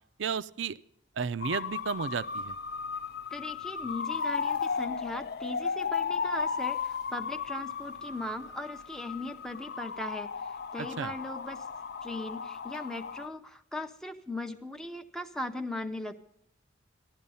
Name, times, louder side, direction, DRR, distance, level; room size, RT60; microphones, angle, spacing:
voice 1, 0.2-0.8 1.2-2.6 10.8-11.1, right 6 dB, 70° right, 15 dB, 0.5 m, -33 dB
sound 1, 1.4-13.3, left 6 dB, 50° left, 0.4 m, -35 dB
voice 2, 3.3-11.7 12.0-16.2, left 1 dB, ahead, 4 dB, 0.6 m, -39 dB
15.0 x 12.0 x 5.5 m, 0.76 s
head